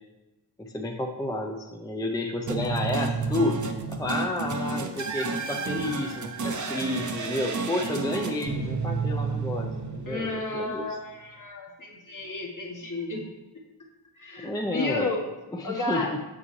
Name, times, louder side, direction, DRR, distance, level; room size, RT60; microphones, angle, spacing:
voice 1, 0.6-3.6 3.9-9.7 9.9-10.8 14.4-15.1 15.5-16.2, left 1 dB, 10° left, 1 dB, 0.5 m, -30 dB
sound 1, 2.5-10.7, right 4 dB, 45° right, 0.7 m, -31 dB
voice 2, 10.0-13.2 14.2-15.3 15.6-16.1, left 2 dB, 45° left, 0 dB, 1.4 m, -32 dB
7.6 x 6.8 x 3.2 m, 1.0 s
wide cardioid pair, 115°, 43 cm